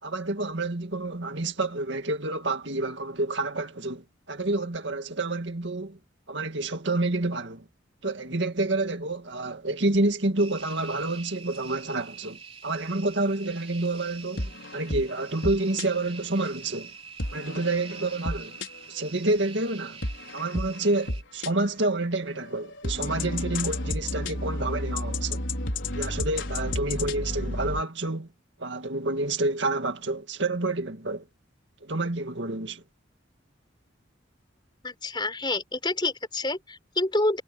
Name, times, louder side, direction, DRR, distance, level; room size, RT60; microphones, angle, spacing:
voice 1, 0.0-6.0 6.3-7.6 8.0-16.9 17.3-18.6 18.9-20.0 20.3-25.4 26.0-28.3 28.6-31.3 31.8-32.8, right 2 dB, 65° right, 2.1 m, -28 dB
sound 1, 10.4-21.2, right 6 dB, 30° right, 3.6 m, -45 dB
sound 2, 14.4-15.9 17.2-19.0 20.0-21.5 22.2-27.8, left 2 dB, 70° left, 5.0 m, -32 dB
voice 2, 34.8-37.4, left 2 dB, 25° left, 4.5 m, -28 dB
head